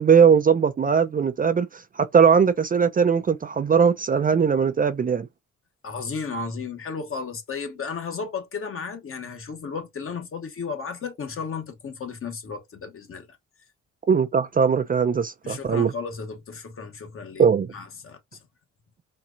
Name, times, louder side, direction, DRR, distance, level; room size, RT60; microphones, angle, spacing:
voice 1, 0.0-5.3 14.1-15.9 17.4-17.7, right 6 dB, 30° right, 0.5 m, -20 dB
voice 2, 5.8-13.3 15.4-17.5 17.7-18.4, left 5 dB, 45° left, 1.3 m, -34 dB
4.3 x 2.4 x 2.5 m
cardioid pair, 90°, 30 cm